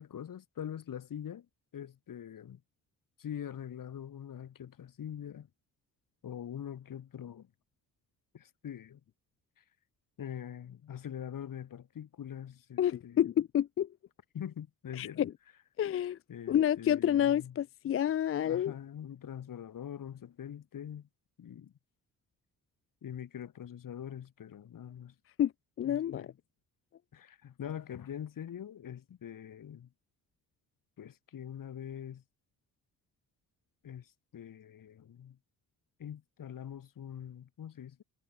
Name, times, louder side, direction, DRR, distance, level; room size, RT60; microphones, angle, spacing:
voice 1, 0.0-1.5 1.7-2.6 3.2-5.5 6.2-7.5 8.3-9.0 9.6-9.7 10.2-13.2 14.3-15.2 16.3-17.6 17.8-17.9 18.4-21.1 21.4-21.7 23.0-25.1 25.8-26.3 27.1-29.9 31.0-32.2 33.8-35.4 36.0-38.0, left 9 dB, 60° left, 2.4 m, -43 dB
voice 2, 12.8-13.9 15.0-15.3 15.8-16.2 16.5-18.7 25.4-25.5 25.8-26.2, left 10 dB, 40° left, 0.4 m, -29 dB
cardioid pair, 70°, 38 cm